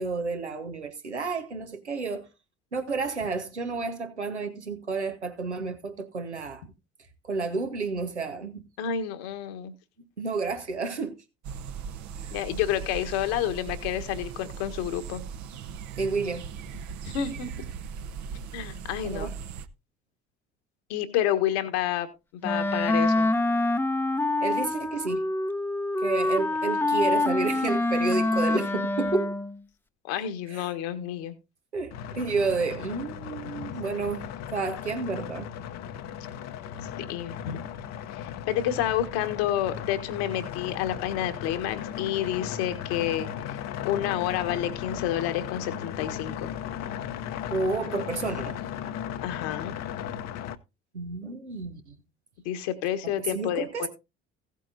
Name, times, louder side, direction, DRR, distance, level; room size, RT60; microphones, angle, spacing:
voice 1, 0.0-2.3 2.7-6.6 7.2-8.6 10.2-11.2 12.2-12.3 16.0-16.5 19.0-19.3 24.4-25.2 26.0-29.3 30.5-30.7 31.7-35.5 47.5-48.6 50.9-52.0 53.0-53.9, right 4 dB, 90° right, 1.3 m, -30 dB
voice 2, 8.8-9.7 12.3-15.2 17.0-17.6 18.5-19.3 20.9-22.1 22.3-23.3 30.0-31.3 37.1-37.6 38.1-43.6 43.8-46.5 49.2-49.7 52.4-53.9, left 11 dB, 65° left, 1.6 m, -29 dB
sound 1, 11.4-19.7, right 7 dB, 55° right, 1.0 m, -39 dB
Wind instrument woodwind instrument, 22.4-29.6, left 2 dB, 5° left, 0.8 m, -26 dB
sound 2, 31.9-50.6, left 9 dB, 50° left, 0.9 m, -36 dB
16.5 x 8.3 x 2.6 m
figure-of-eight pair, 55°, 33 cm